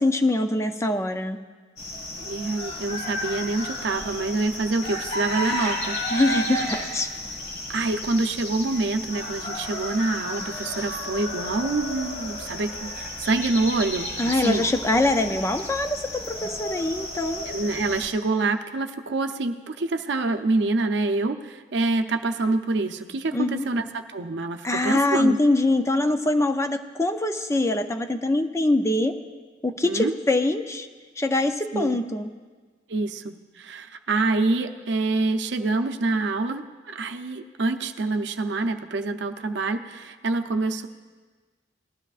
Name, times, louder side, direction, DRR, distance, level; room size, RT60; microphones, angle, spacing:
voice 1, 0.0-1.4 6.1-7.1 14.2-17.5 23.3-23.7 24.6-29.1 29.6-30.9 31.2-32.3, left 2 dB, 15° left, 8 dB, 0.5 m, -23 dB
sound 1, 1.8-18.1, left 1 dB, 40° left, 1.8 m, -32 dB
voice 2, 2.2-6.7 7.7-14.7 17.5-25.4 29.8-30.1 31.7-32.0 32.9-40.9, right 3 dB, 70° right, 7 dB, 0.6 m, -26 dB
19.5 x 12.5 x 2.5 m, 1.4 s
head